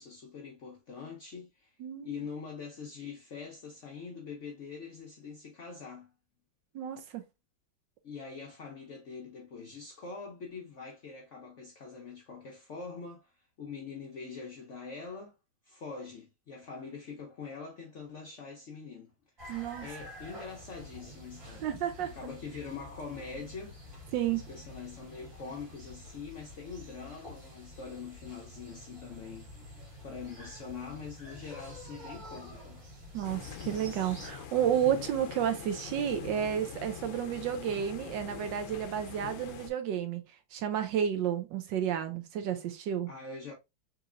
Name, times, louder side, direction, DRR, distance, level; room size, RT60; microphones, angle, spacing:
voice 1, 0.0-1.7 2.0-6.1 8.0-15.3 15.6-19.1 19.8-21.7 22.0-29.7 30.0-32.8 43.1-43.5, left 5 dB, 65° left, 0.7 m, -44 dB
voice 2, 6.7-7.2 19.5-19.9 21.6-22.1 24.1-24.4 33.1-40.2 40.5-43.1, right 9 dB, 75° right, 1.3 m, -31 dB
sound 1, 19.4-34.3, left 1 dB, 35° right, 2.3 m, -48 dB
sound 2, 33.2-39.7, left 8 dB, 85° left, 1.4 m, -44 dB
4.1 x 2.9 x 2.4 m
omnidirectional pair, 2.0 m